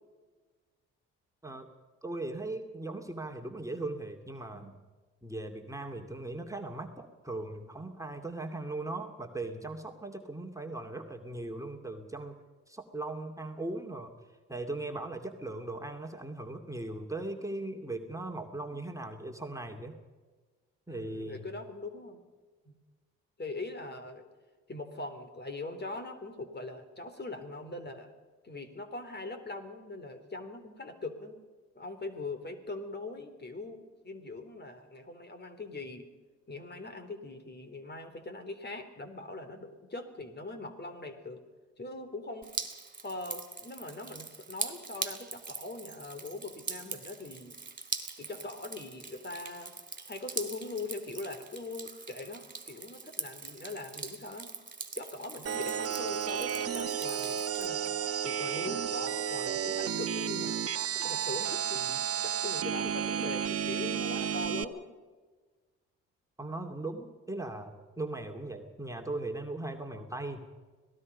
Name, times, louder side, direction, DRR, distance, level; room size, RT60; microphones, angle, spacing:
voice 1, 2.0-4.8 5.2-12.3 12.7-14.1 14.5-19.9 20.9-21.5 66.4-70.5, right 2 dB, 10° right, 3 dB, 2.6 m, -39 dB
voice 2, 20.9-22.2 22.7-22.8 23.4-24.2 24.7-28.1 28.4-31.4 31.8-36.1 36.5-41.4 41.8-42.5 43.0-47.6 48.2-49.7 50.1-54.5 54.9-57.9 58.2-60.6 61.0-64.9, left 2 dB, 35° left, 8 dB, 3.7 m, -41 dB
Drip, 42.4-57.7, right 4 dB, 25° right, 3.5 m, -42 dB
sound 1, 55.5-64.6, right 8 dB, 50° right, 1.2 m, -32 dB
26.0 x 19.0 x 5.5 m, 1.3 s
supercardioid pair, 60°, 31 cm